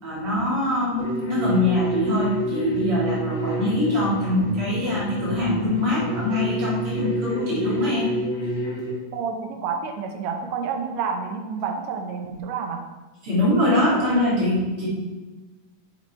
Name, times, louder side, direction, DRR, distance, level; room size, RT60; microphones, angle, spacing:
voice 1, 0.0-8.1 13.2-14.9, left 1 dB, 50° right, -6 dB, 2.7 m, -23 dB
sound 1, 1.0-8.9, right 1 dB, 45° left, 2.4 m, -29 dB
voice 2, 9.1-12.9, right 6 dB, 70° right, 4 dB, 1.9 m, -29 dB
7.5 x 5.8 x 4.4 m, 1.2 s
omnidirectional pair, 3.6 m